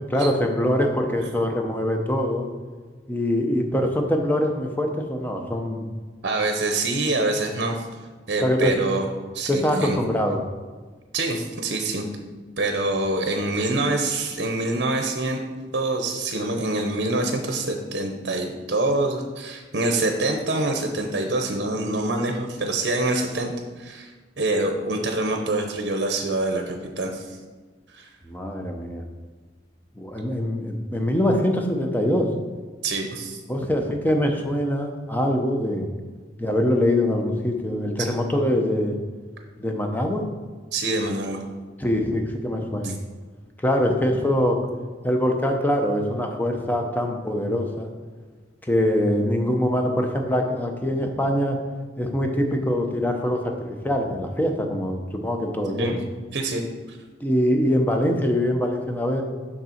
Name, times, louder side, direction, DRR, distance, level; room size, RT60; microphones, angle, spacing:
voice 1, 0.1-2.5 3.1-5.9 8.4-8.7 9.5-10.4 28.3-29.0 30.0-32.3 33.5-35.9 36.4-39.0 39.6-40.2 41.8-43.0 43.6-44.6 45.0-47.9 48.6-51.6 52.0-53.5 53.8-56.0 57.2-59.2, left 1 dB, 10° left, 3 dB, 0.8 m, -23 dB
voice 2, 6.2-7.9 8.3-9.1 9.3-10.0 11.1-12.1 12.6-15.4 15.7-24.1 24.4-27.4 27.9-28.1 32.8-33.4 40.7-41.4 42.8-42.9 55.8-55.9 56.3-56.6, right 2 dB, 70° right, 3 dB, 0.8 m, -25 dB
6.5 x 6.0 x 4.4 m, 1.4 s
head